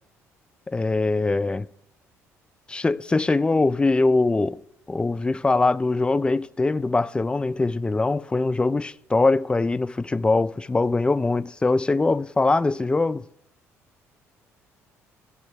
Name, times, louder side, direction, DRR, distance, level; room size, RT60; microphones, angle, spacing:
voice 1, 0.7-1.7 2.7-4.6 4.9-13.2, left 3 dB, 10° left, 0.3 m, -22 dB
10.5 x 5.6 x 7.5 m
figure-of-eight pair, 50°, 8 cm